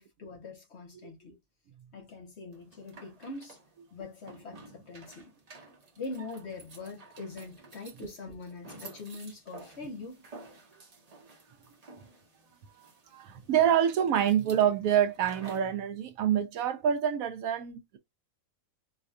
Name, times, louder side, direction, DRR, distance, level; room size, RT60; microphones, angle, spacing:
voice 1, 0.0-1.4 1.9-3.6 3.9-5.3 6.0-10.2, left 3 dB, 55° left, 1.2 m, -43 dB
sound 1, 2.5-15.8, right 3 dB, 35° right, 0.7 m, -52 dB
voice 2, 12.8-18.0, right 9 dB, 85° right, 1.0 m, -27 dB
4.0 x 2.3 x 2.6 m
omnidirectional pair, 1.4 m